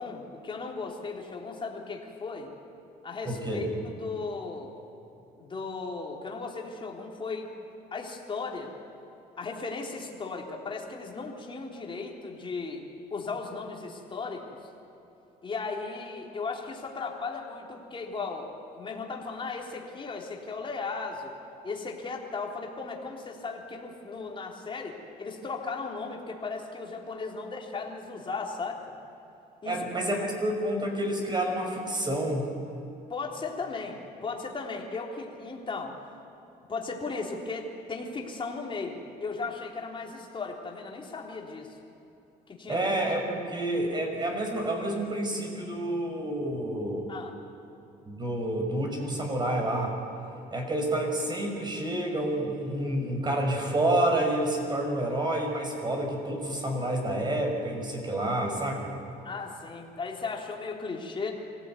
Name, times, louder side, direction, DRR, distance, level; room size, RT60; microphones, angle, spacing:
voice 1, 0.0-2.5 3.0-4.7 5.4-7.5 7.9-8.7 9.4-12.8 13.1-14.5 15.4-18.5 18.7-21.3 21.6-28.9 29.6-29.9 33.1-35.9 36.7-41.8 42.5-42.8 47.1-47.3 59.2-61.3, left 4 dB, 30° left, 0 dB, 3.9 m, -36 dB
voice 2, 3.3-3.7 29.6-32.5 42.7-47.1 48.1-49.9 50.5-58.9, right 1 dB, 25° right, 2 dB, 5.9 m, -29 dB
24.5 x 17.0 x 9.4 m, 2.9 s
cardioid pair, 110°, 17 cm